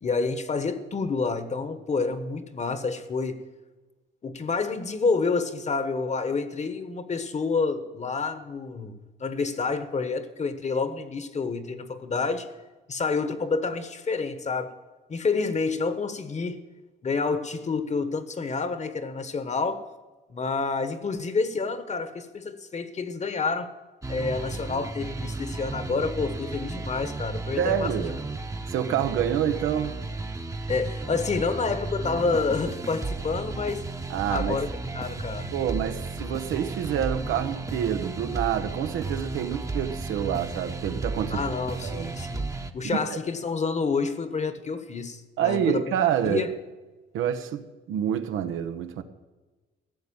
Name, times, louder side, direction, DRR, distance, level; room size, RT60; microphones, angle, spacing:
voice 1, 0.0-3.4 4.2-12.5 12.9-14.8 15.1-16.6 17.0-19.9 20.3-23.7 24.1-28.1 30.7-33.8 34.3-34.7 34.9-35.5 41.3-45.8 46.2-46.5, left 4 dB, 35° left, 1.3 m, -28 dB
sound 1, 24.0-42.7, right 3 dB, 15° right, 1.0 m, -34 dB
voice 2, 27.6-28.1 28.7-30.0 34.1-34.6 35.5-41.4 41.8-42.1 42.8-43.2 45.4-46.5 47.1-49.0, right 9 dB, 90° right, 1.0 m, -27 dB
15.5 x 6.7 x 8.8 m
cardioid pair, 90°, 20 cm